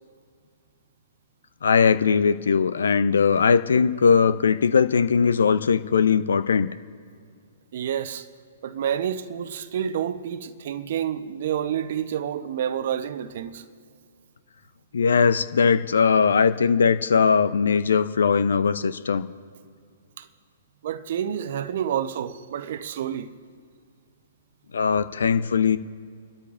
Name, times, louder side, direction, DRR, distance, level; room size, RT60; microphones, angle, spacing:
voice 1, 1.6-6.7 14.9-19.3 24.7-25.8, left 6 dB, 70° left, 0.6 m, -20 dB
voice 2, 7.7-8.3 8.6-13.6 20.2-20.3 20.8-23.3, right 9 dB, 55° right, 0.8 m, -29 dB
29.5 x 13.0 x 2.5 m
figure-of-eight pair, 115°, 0 cm